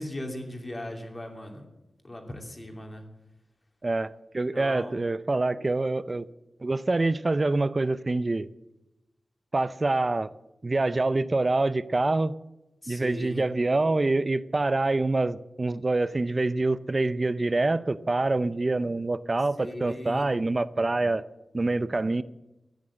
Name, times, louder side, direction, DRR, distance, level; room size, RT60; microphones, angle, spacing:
voice 1, 0.0-1.6 2.0-3.0 4.5-5.0 12.8-13.4 19.6-20.3, left 1 dB, 20° left, 3 dB, 2.8 m, -38 dB
voice 2, 3.8-6.3 6.6-8.5 9.5-10.3 10.6-12.3 12.9-21.2 21.5-22.2, right 2 dB, 30° right, 16 dB, 0.5 m, -26 dB
14.0 x 10.0 x 7.6 m, 0.97 s
wide cardioid pair, 115°, 0 cm